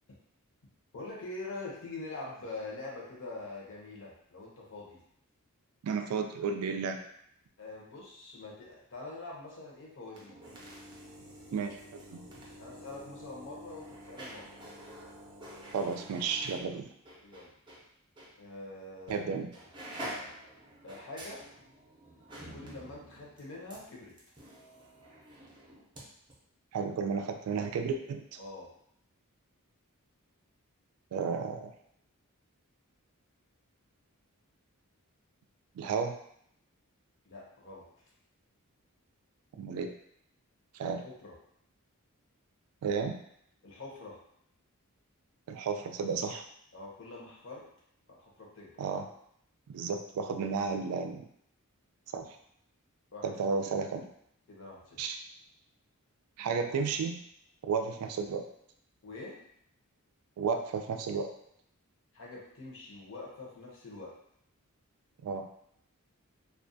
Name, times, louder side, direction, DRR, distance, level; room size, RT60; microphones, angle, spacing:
voice 1, 0.9-5.0 7.6-10.4 12.6-14.5 17.2-17.5 18.4-19.3 19.5-19.7 20.8-21.4 22.5-24.1 28.4-28.7 37.3-37.8 40.8-41.3 43.6-44.2 46.7-47.7 48.1-48.7 53.1-53.3 54.5-55.0 59.0-59.4 62.1-64.1, left 2 dB, 60° left, -3 dB, 0.7 m, -44 dB
voice 2, 5.8-7.0 11.5-12.2 15.7-16.9 19.1-19.5 26.7-28.4 31.1-31.7 35.8-36.1 39.6-39.9 40.7-41.0 42.8-43.2 45.5-46.4 48.8-49.1 49.7-51.3 52.1-52.4 53.2-54.1 55.0-55.2 56.4-57.2 57.6-58.4 60.4-61.3 65.2-65.5, right 5 dB, 75° right, 10 dB, 0.3 m, -33 dB
sound 1, 10.1-17.8 18.2-18.3 19.1-19.3 19.5-26.0 26.3-26.4, equal, 20° right, 0.5 m, -48 dB
2.4 x 2.2 x 2.5 m, 0.70 s
head